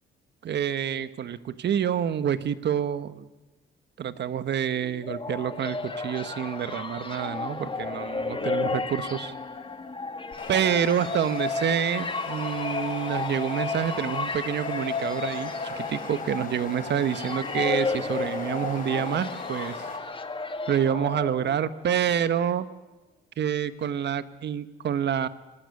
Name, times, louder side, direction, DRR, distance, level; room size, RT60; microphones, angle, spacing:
voice 1, 0.4-3.3 4.0-9.3 10.5-19.8 20.7-22.7 23.4-25.3, right 9 dB, 60° right, 12 dB, 1.4 m, -27 dB
sound 1, 4.8-21.7, left 3 dB, 25° left, 2.2 m, -33 dB
sound 2, 10.3-20.0, left 4 dB, 45° left, 6.3 m, -39 dB
25.0 x 18.5 x 9.8 m, 1.1 s
cardioid pair, 90°, 20 cm